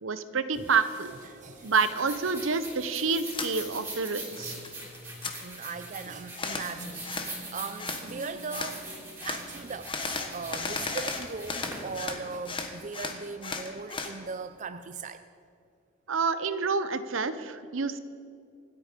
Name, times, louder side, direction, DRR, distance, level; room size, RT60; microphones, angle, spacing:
voice 1, 0.0-1.1 1.6-4.5 16.1-18.0, right 5 dB, 70° right, 12 dB, 0.8 m, -28 dB
sound 1, 0.5-13.0, right 2 dB, 10° right, 3.4 m, -43 dB
sound 2, 1.2-12.7, equal, 60° left, 2.9 m, -51 dB
voice 2, 1.3-1.7 4.5-4.6 5.4-8.9 9.3-15.2 16.9-17.0, right 4 dB, 35° right, 10 dB, 0.4 m, -39 dB
sound 3, 3.3-3.5 3.9-4.7 4.9-5.3 6.4-6.7 7.0-7.3 7.8-8.0 8.5-8.7 9.2-9.4 9.8-12.2 12.4-14.1, left 4 dB, 25° left, 1.3 m, -34 dB
25.5 x 8.7 x 5.2 m, 2.3 s
head